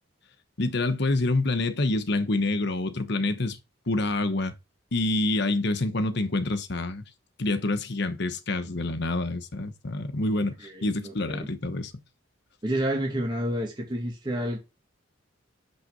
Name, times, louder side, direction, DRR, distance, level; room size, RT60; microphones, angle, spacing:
voice 1, 0.6-3.6 3.9-4.5 4.9-7.0 7.4-11.9, left 2 dB, 60° left, 1.1 m, -27 dB
voice 2, 10.6-11.5 12.6-14.6, right 1 dB, 25° right, 2.2 m, -30 dB
6.5 x 5.9 x 3.8 m
head